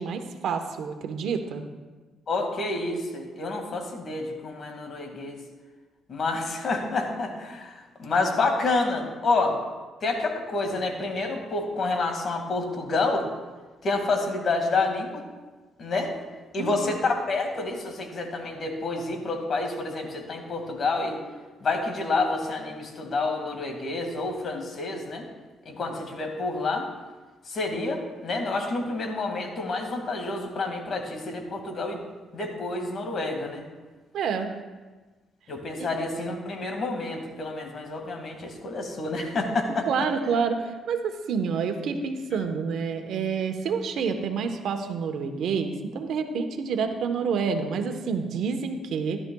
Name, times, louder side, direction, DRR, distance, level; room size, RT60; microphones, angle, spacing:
voice 1, 0.0-1.6 16.6-16.9 34.1-34.5 35.8-35.9 39.9-49.2, right 5 dB, 75° right, 6 dB, 1.1 m, -28 dB
voice 2, 2.3-5.4 6.1-9.6 10.0-13.3 13.8-15.2 15.8-16.1 16.5-21.2 21.6-25.3 25.7-26.9 27.5-32.0 32.3-33.7 35.5-39.9, left 3 dB, 50° left, 3 dB, 2.1 m, -28 dB
15.5 x 12.0 x 2.3 m, 1.3 s
cardioid pair, 90°, 0 cm